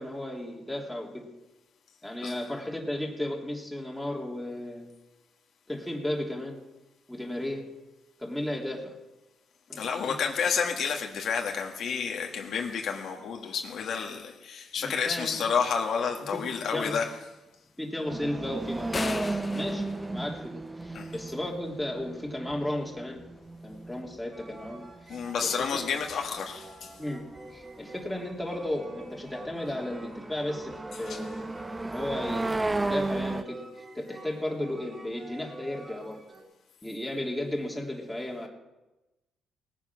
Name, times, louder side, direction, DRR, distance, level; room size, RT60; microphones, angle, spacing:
voice 1, 0.0-1.3 2.0-4.9 5.7-6.6 7.1-7.7 8.2-9.0 9.7-10.3 14.8-15.5 16.3-17.0 17.8-23.2 23.6-25.7 27.0-31.6 31.8-36.2 36.8-38.5, left 1 dB, 5° left, -2 dB, 3.2 m, -35 dB
voice 2, 9.7-17.1 20.9-21.1 25.1-26.9 31.1-31.2, left 6 dB, 65° left, 2 dB, 1.7 m, -30 dB
sound 1, 18.1-25.2 25.6-25.7 26.0-26.5 27.4-27.5 28.0-33.4, right 2 dB, 15° right, 0.6 m, -34 dB
sound 2, 18.9-21.1, left 4 dB, 30° left, 0.7 m, -36 dB
sound 3, 24.3-36.4, right 2 dB, 35° right, 3.6 m, -47 dB
18.5 x 9.6 x 6.2 m, 1.1 s
cardioid pair, 90°, 0 cm